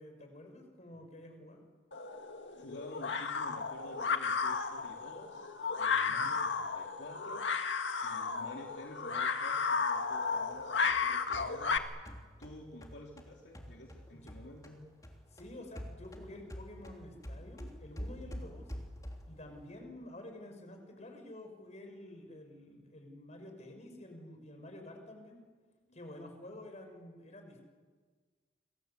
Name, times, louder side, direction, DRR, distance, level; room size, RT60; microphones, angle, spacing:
voice 1, 0.0-1.6 6.1-6.3 14.1-14.3 15.3-18.7 19.3-25.4 25.9-27.6, left 1 dB, 40° left, 4 dB, 6.0 m, -50 dB
sound 1, 1.9-11.8, left 5 dB, 90° left, 1.8 m, -34 dB
voice 2, 2.5-7.5 8.0-11.8 12.4-14.9 25.9-26.0, left 1 dB, 70° left, 0 dB, 3.1 m, -51 dB
sound 2, 10.5-14.8 15.0-19.4, equal, 20° left, 3.3 m, -46 dB
28.5 x 22.5 x 8.3 m, 1.5 s
head